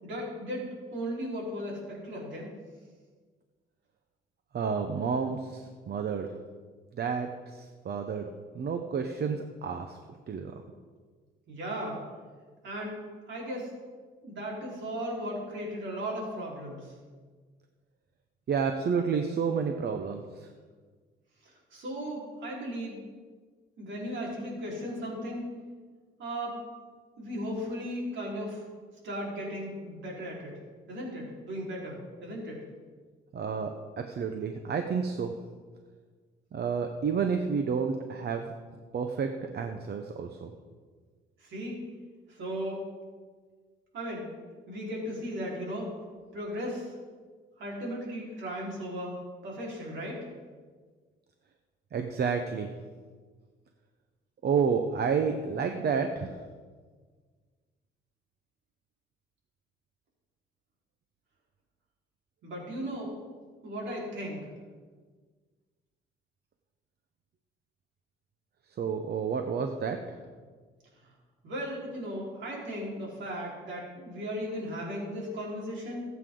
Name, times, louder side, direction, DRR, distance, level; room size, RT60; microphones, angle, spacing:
voice 1, 0.0-2.5 11.5-12.0 12.6-13.0 13.3-13.7 14.2-16.9 21.7-23.0 23.8-25.4 26.2-26.6 27.2-28.6 29.0-30.6 30.9-32.6 41.4-41.8 42.3-42.8 43.9-44.3 44.7-45.9 46.3-46.9 47.6-49.2 49.4-50.3 62.4-63.1 63.6-64.5 71.4-76.0, equal, 70° right, -4 dB, 4.5 m, -36 dB
voice 2, 4.5-6.3 6.9-10.0 10.3-10.5 18.5-20.5 33.3-35.3 36.5-38.5 38.9-39.3 39.5-40.5 51.9-52.7 54.4-56.4 68.8-70.2, right 6 dB, 55° right, 5 dB, 1.0 m, -30 dB
20.0 x 8.2 x 3.9 m, 1.5 s
cardioid pair, 90°, 20 cm